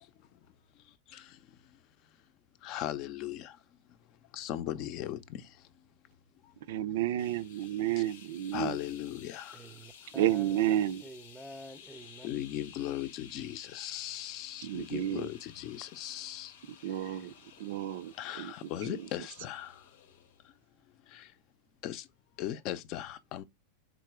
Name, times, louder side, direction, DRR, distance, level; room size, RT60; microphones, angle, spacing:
voice 1, 2.6-3.6 4.3-5.5 8.5-9.6 12.2-16.6 17.0-17.2 18.2-19.8 21.1-21.3 21.8-22.1 22.4-23.4, left 12 dB, 50° left, 0.5 m, -38 dB
voice 2, 6.7-8.8 10.2-11.0 14.6-15.3 16.8-18.5 18.9-19.1, right 12 dB, 70° right, 0.4 m, -31 dB
sound 1, 7.2-20.5, left 7 dB, 80° left, 0.7 m, -55 dB
voice 3, 9.5-10.7 11.0-12.3, equal, 5° right, 0.6 m, -48 dB
3.8 x 3.0 x 4.7 m
supercardioid pair, 130°, 0 cm